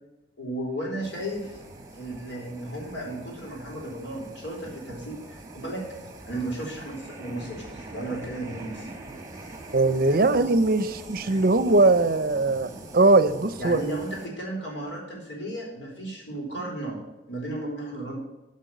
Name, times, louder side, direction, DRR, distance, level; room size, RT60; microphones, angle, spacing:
voice 1, 0.4-1.6 1.9-5.8 6.2-8.9 10.1-10.3 11.2-11.4 13.6-17.0 17.3-18.2, right 1 dB, 80° left, -2 dB, 4.3 m, -34 dB
sound 1, 1.0-14.3, right 2 dB, 20° right, 1.3 m, -43 dB
voice 2, 9.7-13.8, right 2 dB, 50° right, 13 dB, 0.6 m, -21 dB
10.5 x 5.5 x 7.8 m, 1.0 s
head